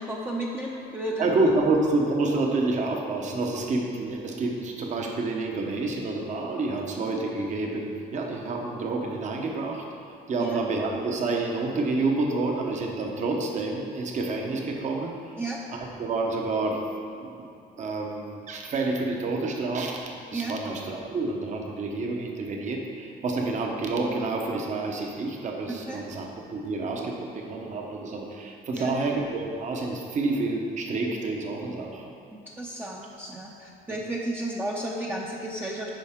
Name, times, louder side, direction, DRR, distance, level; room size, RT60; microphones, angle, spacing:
voice 1, 0.0-1.4 10.4-10.6 15.4-15.6 20.3-20.5 25.7-26.0 28.7-29.0 32.3-35.9, right 1 dB, 10° right, -3 dB, 0.7 m, -33 dB
voice 2, 1.2-9.8 10.3-15.2 15.7-16.8 17.2-17.3 17.8-32.0, right 3 dB, 45° right, 1 dB, 1.0 m, -28 dB
8.9 x 5.4 x 3.7 m, 2.6 s
cardioid pair, 110°, 17 cm